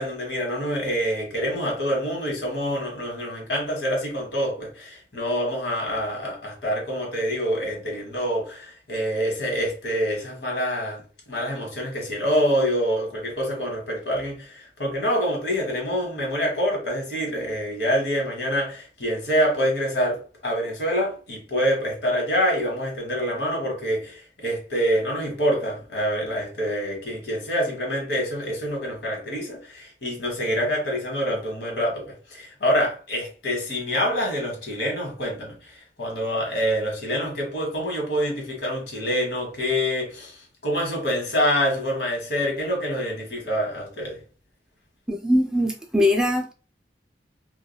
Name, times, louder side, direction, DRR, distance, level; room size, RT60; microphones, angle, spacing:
voice 1, 0.0-11.0 11.3-44.2, equal, 80° left, 1.2 m, -26 dB
voice 2, 45.1-46.5, left 1 dB, 5° right, 0.3 m, -21 dB
3.1 x 2.3 x 2.2 m
head